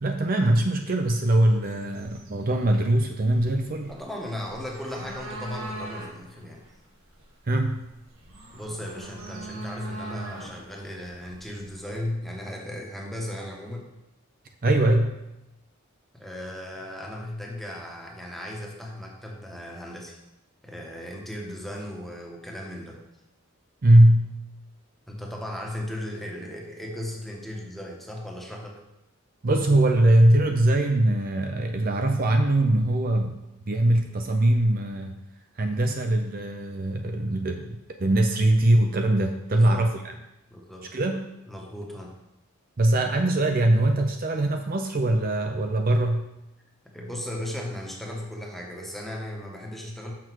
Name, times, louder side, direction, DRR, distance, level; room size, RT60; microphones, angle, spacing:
voice 1, 0.0-3.9 7.5-7.9 14.6-15.2 23.8-24.3 29.4-33.4 33.7-35.2 35.6-40.2 40.9-41.2 42.8-46.3, right 1 dB, 45° right, 4 dB, 0.6 m, -22 dB
sound 1, 1.3-12.1, right 2 dB, 75° right, 1.6 m, -43 dB
voice 2, 3.9-6.6 8.5-13.9 16.1-20.2 20.6-23.0 25.1-28.8 39.5-39.9 40.5-40.9 41.5-42.2 46.9-50.1, left 1 dB, ahead, -1 dB, 1.1 m, -36 dB
6.5 x 6.0 x 4.6 m, 0.90 s
head